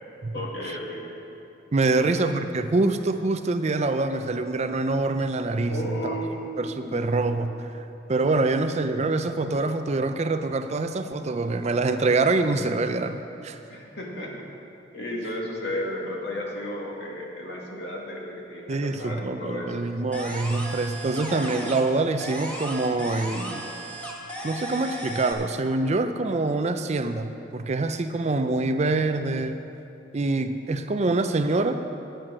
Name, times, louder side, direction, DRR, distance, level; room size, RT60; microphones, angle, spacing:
voice 1, 0.3-1.1 1.9-2.3 5.7-7.0 13.7-14.5 14.9-19.8 20.4-20.7, left 1 dB, 65° left, -2 dB, 2.1 m, -34 dB
voice 2, 1.7-6.1 6.6-13.6 18.7-23.6 24.4-29.6 30.1-31.8, right 3 dB, 35° right, 9 dB, 0.5 m, -25 dB
sound 1, 20.1-21.9 22.2-25.3, equal, 5° left, 1.3 m, -35 dB
11.0 x 9.1 x 6.1 m, 2.7 s
head